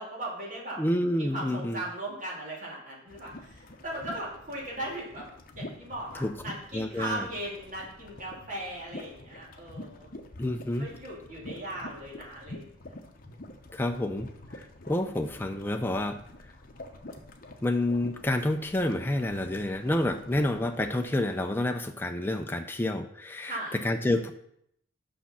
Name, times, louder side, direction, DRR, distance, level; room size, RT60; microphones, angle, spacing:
voice 1, 0.0-0.8 1.2-5.3 5.5-10.2 10.8-12.6 23.5-23.8, right 1 dB, 40° right, -4 dB, 2.5 m, -38 dB
voice 2, 0.8-1.8 6.2-6.3 6.7-7.3 10.4-10.9 13.7-16.2 17.6-24.3, left 1 dB, 10° left, 5 dB, 0.4 m, -29 dB
sound 1, 3.1-21.4, left 1 dB, 45° left, 0.8 m, -47 dB
6.3 x 6.0 x 5.6 m, 0.72 s
head